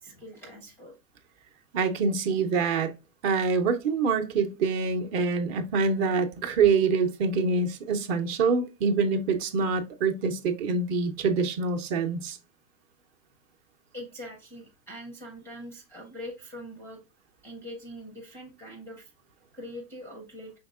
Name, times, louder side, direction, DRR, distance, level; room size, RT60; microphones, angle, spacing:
voice 1, 0.0-1.0 13.9-17.0 17.4-19.1 19.5-20.5, equal, 5° left, 0.4 m, -43 dB
voice 2, 1.7-2.9 3.2-12.4, right 5 dB, 40° right, 0.7 m, -25 dB
5.2 x 3.6 x 2.3 m
hypercardioid pair, 125°, 50 cm